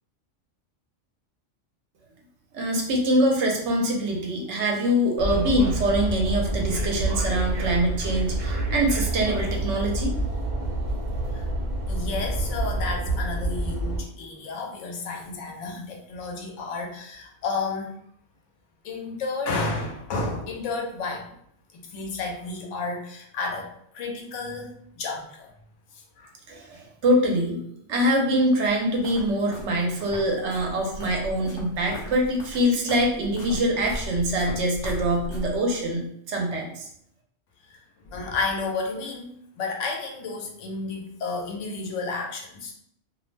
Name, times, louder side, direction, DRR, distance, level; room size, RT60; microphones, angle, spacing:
voice 1, 2.5-10.2 26.5-27.6 27.9-36.9, equal, 70° right, 0 dB, 0.9 m, -24 dB
sound 1, 5.2-14.0, right 1 dB, 50° right, 0.5 m, -28 dB
voice 2, 11.9-18.0 18.8-21.3 21.7-24.7 24.9-25.5 26.2-26.3 37.7-37.8 38.0-39.3 39.6-42.7, left 3 dB, 85° left, 1 dB, 1.0 m, -31 dB
sound 2, 28.5-35.8, equal, 30° left, 0.5 m, -38 dB
2.5 x 2.0 x 3.1 m, 0.69 s
omnidirectional pair, 1.2 m